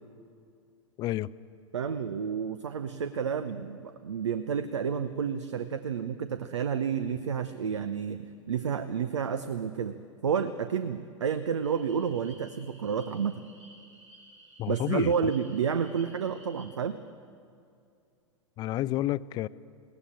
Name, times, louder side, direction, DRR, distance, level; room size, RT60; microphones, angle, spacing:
voice 1, 1.0-1.3 14.6-15.1 18.6-19.5, left 15 dB, 25° left, 18 dB, 0.4 m, -30 dB
voice 2, 1.7-10.0 10.2-13.4 14.7-17.0, right 7 dB, 65° right, 11 dB, 0.8 m, -30 dB
sound 1, 11.6-16.7, right 1 dB, 85° right, 6.5 m, -55 dB
21.5 x 17.5 x 8.8 m, 2.4 s
figure-of-eight pair, 95°, 16 cm